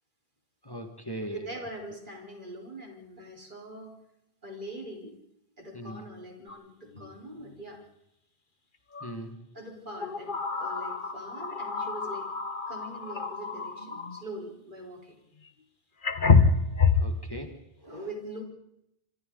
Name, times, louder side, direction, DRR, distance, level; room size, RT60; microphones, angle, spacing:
voice 1, 0.6-1.4 5.7-6.0 9.0-9.4 16.9-18.1, equal, 20° left, 5 dB, 1.9 m, -39 dB
voice 2, 1.3-3.9 4.4-5.2 5.6-7.8 9.5-12.3 12.7-15.2 17.8-18.4, right 1 dB, 50° right, 1 dB, 4.5 m, -42 dB
sound 1, 6.5-6.6 6.9-7.1 8.9-9.1 10.0-14.3 15.5-15.6 16.0-17.2, left 4 dB, 55° left, 1.6 m, -27 dB
27.0 x 25.0 x 4.0 m, 0.80 s
omnidirectional pair, 1.0 m